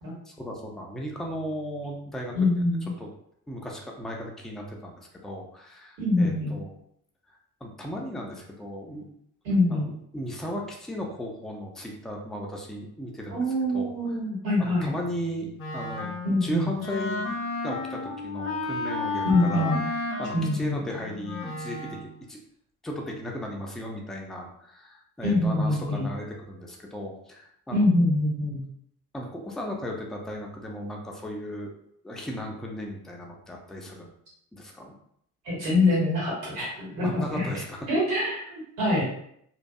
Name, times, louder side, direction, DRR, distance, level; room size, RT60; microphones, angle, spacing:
voice 1, 0.3-2.6 3.0-3.1 3.5-6.7 7.6-9.1 9.7-13.4 13.7-13.9 14.6-16.1 16.4-17.4 17.6-19.7 20.2-22.4 22.8-27.9 29.1-31.7 32.0-34.1 34.5-34.9 37.0-37.8, equal, ahead, 0 dB, 0.4 m, -36 dB
voice 2, 2.3-2.9 6.0-6.6 9.4-9.9 13.3-14.9 16.2-16.7 19.2-19.8 20.3-20.8 25.2-26.1 27.7-28.6 35.4-37.5 37.9-39.0, left 2 dB, 70° right, -5 dB, 1.1 m, -24 dB
Wind instrument woodwind instrument, 15.6-22.1, left 3 dB, 30° left, 0.7 m, -33 dB
2.5 x 2.1 x 2.4 m, 0.70 s
figure-of-eight pair, 40°, 46 cm